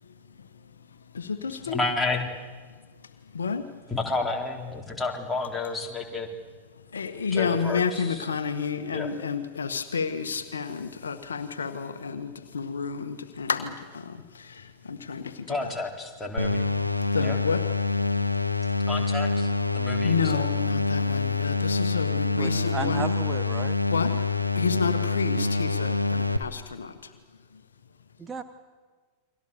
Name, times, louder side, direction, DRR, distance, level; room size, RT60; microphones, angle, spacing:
voice 1, 0.0-1.8 3.0-3.8 6.7-15.7 17.0-17.7 18.3-18.4 20.0-23.1 23.9-27.1 27.5-27.6, left 6 dB, 70° left, 9 dB, 1.6 m, -31 dB
voice 2, 1.6-2.3 3.9-6.3 7.3-8.2 8.9-9.1 15.5-16.8 17.2-17.4 18.9-20.5, left 3 dB, 5° left, -1 dB, 4.1 m, -31 dB
sound 1, 16.4-26.4, left 3 dB, 85° left, 1.3 m, -26 dB
voice 3, 22.4-23.8 28.2-28.4, right 4 dB, 15° right, 8 dB, 1.1 m, -34 dB
29.5 x 23.5 x 7.1 m, 1.5 s
figure-of-eight pair, 90°, 0 cm